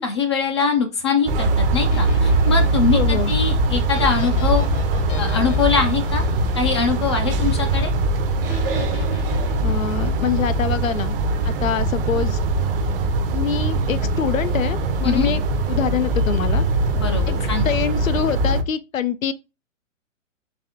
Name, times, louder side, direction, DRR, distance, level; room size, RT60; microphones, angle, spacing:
voice 1, 0.0-4.7 5.2-6.2 6.6-7.9 15.0-15.3 16.9-17.7, left 5 dB, 25° left, 0.3 m, -22 dB
sound 1, 1.3-18.6, right 2 dB, 45° right, 0.7 m, -21 dB
sound 2, 1.9-7.2 8.5-10.4, left 3 dB, 65° left, 1.0 m, -35 dB
voice 2, 2.9-3.3 9.6-11.2 11.4-12.4 13.3-15.4 15.7-16.6 17.3-19.3, left 8 dB, 85° left, 0.6 m, -25 dB
4.2 x 3.3 x 2.8 m
hypercardioid pair, 120°, 39 cm